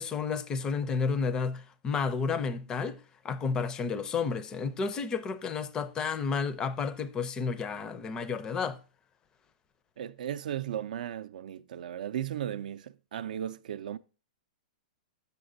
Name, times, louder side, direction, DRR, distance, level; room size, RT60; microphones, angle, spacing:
voice 1, 0.0-3.0 3.2-8.8, left 5 dB, 15° left, 0.4 m, -31 dB
voice 2, 10.0-14.0, right 10 dB, 65° right, 0.4 m, -36 dB
7.8 x 6.7 x 2.6 m
hypercardioid pair, 160°, 5 cm